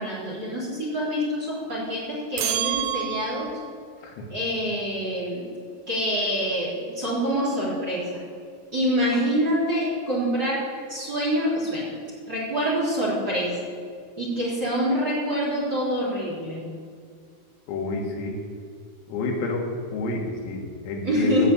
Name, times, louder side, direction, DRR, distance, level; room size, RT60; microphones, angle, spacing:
voice 1, 0.0-3.4 4.3-5.4 5.9-8.2 8.7-10.6 10.9-11.9 12.3-13.6 14.2-16.6 21.0-21.5, equal, 25° right, -6 dB, 3.4 m, -26 dB
sound 1, 2.4-3.7, right 12 dB, 85° right, 3.4 m, -28 dB
voice 2, 17.7-18.4 19.1-21.5, left 2 dB, 85° left, 0 dB, 4.5 m, -29 dB
15.5 x 5.9 x 8.5 m, 2.2 s
omnidirectional pair, 5.9 m